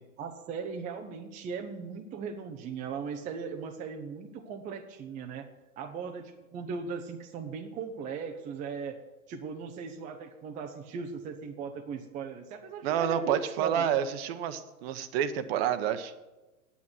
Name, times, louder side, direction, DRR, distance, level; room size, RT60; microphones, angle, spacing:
voice 1, 0.2-5.4 5.8-9.0 9.3-14.0, right 5 dB, 15° right, 4 dB, 0.7 m, -38 dB
voice 2, 12.8-16.1, right 9 dB, 45° right, 11 dB, 1.0 m, -29 dB
9.3 x 8.7 x 7.8 m, 1.1 s
hypercardioid pair, 145°, 44 cm